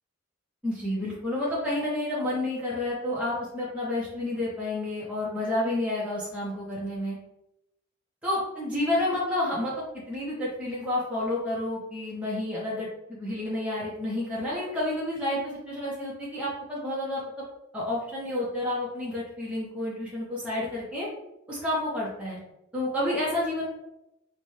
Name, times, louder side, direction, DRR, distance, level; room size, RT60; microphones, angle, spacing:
voice 1, 0.6-7.2 8.2-17.2 17.7-21.1 21.5-22.4 22.7-23.7, left 1 dB, 5° right, -7 dB, 0.6 m, -30 dB
4.1 x 2.2 x 3.1 m, 0.89 s
head